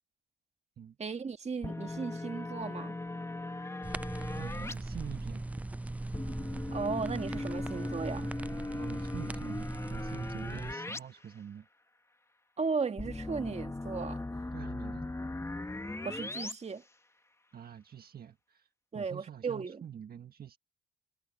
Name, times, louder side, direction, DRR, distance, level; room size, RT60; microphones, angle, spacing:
voice 1, 1.0-3.0 6.7-8.3 12.6-14.2 16.0-16.8 18.9-19.8, right 5 dB, 35° right, 2.0 m, -36 dB
sound 1, 1.6-4.7 6.1-11.0 11.3-11.4 13.0-16.5, left 2 dB, 15° left, 1.8 m, -39 dB
sound 2, 3.8-10.7, right 2 dB, 5° right, 0.3 m, -39 dB
voice 2, 4.4-5.4 8.7-11.7 14.5-15.1 17.5-18.7 18.9-20.6, right 9 dB, 50° right, 1.6 m, -46 dB
cardioid pair, 90°, 20 cm